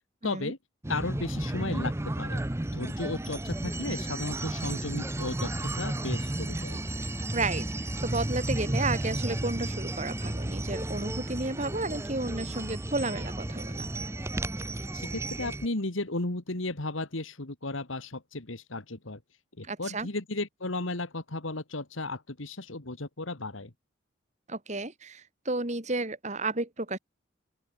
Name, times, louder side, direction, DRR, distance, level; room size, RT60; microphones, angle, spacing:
voice 1, 0.2-0.6 0.9-2.4 2.7-6.8 14.9-19.2 19.6-23.7, left 2 dB, 85° left, 2.3 m, -35 dB
sound 1, 0.8-15.7, right 1 dB, 15° right, 0.6 m, -33 dB
voice 2, 7.3-13.9 19.6-20.1 24.5-27.0, right 2 dB, 35° right, 2.1 m, -32 dB
open air
head